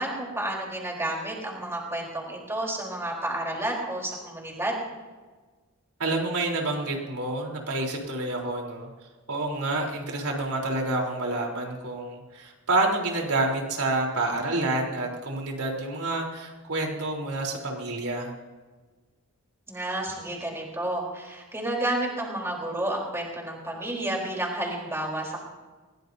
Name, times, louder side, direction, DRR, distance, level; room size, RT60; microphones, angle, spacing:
voice 1, 0.0-4.8 19.7-25.4, right 1 dB, 10° right, -2 dB, 3.8 m, -31 dB
voice 2, 6.0-8.9 9.3-18.3, right 2 dB, 90° right, 0 dB, 3.7 m, -28 dB
21.5 x 20.5 x 2.7 m, 1.3 s
head